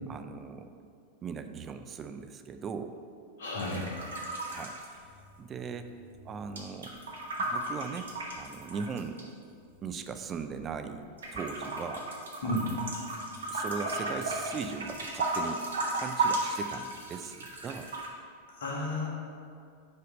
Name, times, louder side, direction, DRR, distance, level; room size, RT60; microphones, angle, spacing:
voice 1, 0.1-0.9 1.2-3.0 4.5-5.1 5.4-5.9 6.3-6.9 7.4-9.3 9.8-12.1 12.4-12.8 13.5-15.7 16.0-17.9, right 6 dB, 25° right, 8 dB, 0.3 m, -39 dB
voice 2, 3.4-3.9 12.4-12.6 18.6-19.1, left 1 dB, 60° left, -3 dB, 1.3 m, -32 dB
sound 1, 3.6-5.6 5.9-9.2 9.9-10.8 11.2-18.1, right 2 dB, 65° right, 0.9 m, -35 dB
5.2 x 4.0 x 5.1 m, 2.3 s
figure-of-eight pair, 90°, 0 cm